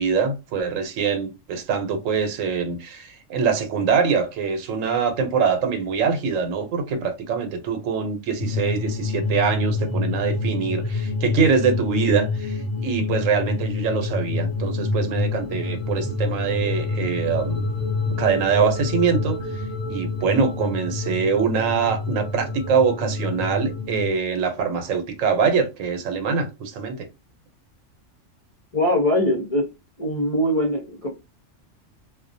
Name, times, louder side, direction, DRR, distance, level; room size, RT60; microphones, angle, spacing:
voice 1, 0.0-17.6 18.2-27.1, right 5 dB, 80° right, 1.0 m, -24 dB
sound 1, 8.4-24.1, left 3 dB, 85° left, 1.0 m, -27 dB
voice 2, 28.7-29.7 30.0-31.1, left 1 dB, 40° left, 0.5 m, -22 dB
2.3 x 2.1 x 2.6 m
omnidirectional pair, 1.3 m